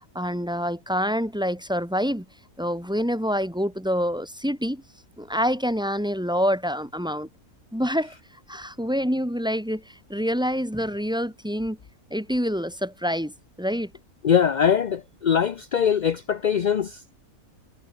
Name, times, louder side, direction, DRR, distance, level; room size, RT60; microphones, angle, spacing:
voice 1, 0.1-2.3 2.6-4.8 5.2-7.3 7.7-8.1 8.5-11.8 12.1-13.3 13.6-13.9, equal, 5° right, 2.0 m, -26 dB
voice 2, 14.2-17.1, left 8 dB, 50° left, 0.5 m, -22 dB
omnidirectional pair, 1.5 m